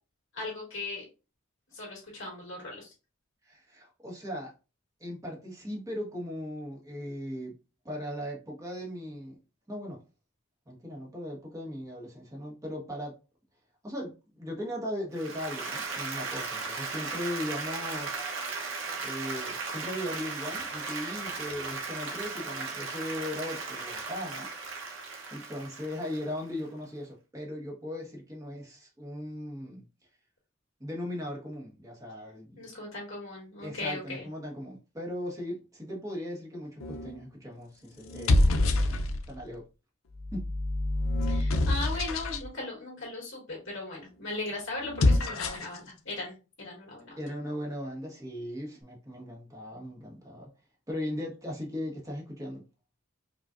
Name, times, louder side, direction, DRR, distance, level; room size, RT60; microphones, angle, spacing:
voice 1, 0.3-1.1 1.7-2.9 32.6-34.3 41.3-47.2, left 2 dB, 65° left, 2.2 m, -38 dB
voice 2, 3.4-4.5 5.0-7.5 7.8-9.4 9.7-10.0 10.7-13.2 13.8-18.4 19.0-24.5 25.3-29.8 30.8-32.7 33.6-39.6 40.3-40.5 47.2-50.5 50.9-52.6, left 1 dB, 15° right, 1.1 m, -38 dB
Applause, 15.1-26.5, right 4 dB, 70° right, 0.9 m, -37 dB
sound 1, 36.8-37.2 38.0-39.4 40.1-42.5 44.8-45.8, left 2 dB, 80° left, 0.5 m, -26 dB
5.0 x 2.4 x 2.4 m
head